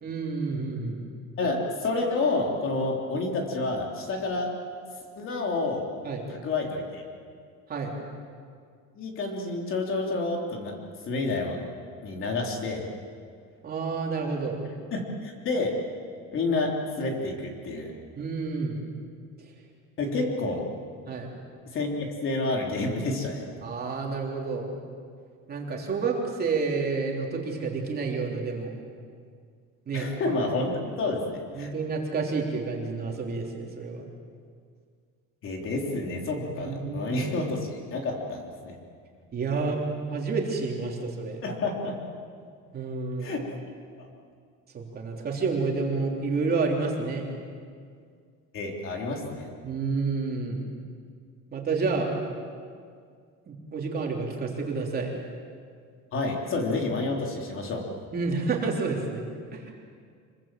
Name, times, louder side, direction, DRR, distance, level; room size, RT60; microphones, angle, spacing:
voice 1, 0.0-1.0 6.0-6.2 7.7-8.0 13.6-14.6 18.2-18.8 21.1-21.3 23.6-24.7 25.5-28.7 29.9-30.1 31.5-34.1 36.6-37.2 39.3-39.8 40.1-41.4 42.7-43.4 44.7-47.2 49.6-50.7 51.5-52.1 53.5-55.1 58.1-59.2 59.5-59.7, right 4 dB, 30° right, -1 dB, 3.5 m, -29 dB
voice 2, 1.4-4.5 5.2-5.9 6.3-7.0 9.0-10.7 11.1-11.6 12.0-12.8 14.9-15.7 16.3-17.9 20.0-20.6 21.7-21.9 22.2-23.5 29.9-30.7 31.0-31.7 35.4-37.6 37.9-38.8 41.4-42.0 43.2-43.5 44.0-44.1 48.5-49.5 56.1-57.9, left 3 dB, 40° left, 1 dB, 3.6 m, -29 dB
26.5 x 23.0 x 7.6 m, 2.1 s
cardioid pair, 175°, 33 cm